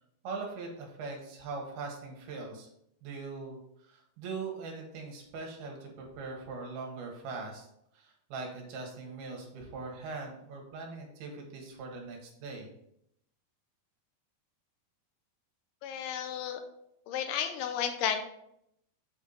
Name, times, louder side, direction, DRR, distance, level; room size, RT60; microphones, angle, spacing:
voice 1, 0.2-2.7 3.0-7.7 7.9-12.7, right 4 dB, 70° right, 1 dB, 3.2 m, -41 dB
voice 2, 15.8-16.6 17.1-18.2, left 8 dB, 80° left, 6 dB, 2.4 m, -32 dB
8.2 x 4.5 x 4.0 m, 0.76 s
omnidirectional pair, 4.7 m